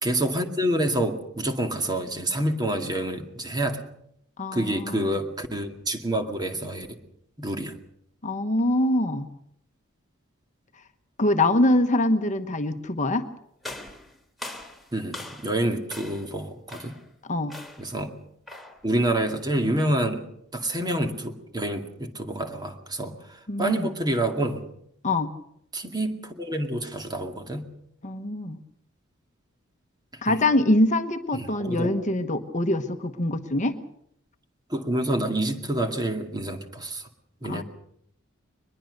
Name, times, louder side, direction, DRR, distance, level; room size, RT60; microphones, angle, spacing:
voice 1, 0.0-3.8 4.5-7.0 7.4-7.8 14.9-17.0 17.8-18.1 18.8-20.2 20.5-24.6 25.7-27.7 30.3-30.4 31.3-31.9 34.7-37.1 37.4-37.6, right 1 dB, 20° right, 5 dB, 2.3 m, -27 dB
voice 2, 4.4-5.1 8.2-9.3 11.2-13.2 17.2-17.5 23.5-23.9 25.0-25.3 28.0-28.6 30.2-33.8 37.4-37.6, left 1 dB, 35° left, 7 dB, 1.2 m, -24 dB
sound 1, 13.6-15.6 15.9-16.3 16.7-17.1 17.5-17.9 18.5-18.8, left 2 dB, ahead, 3.3 m, -41 dB
23.0 x 21.0 x 6.7 m, 0.73 s
head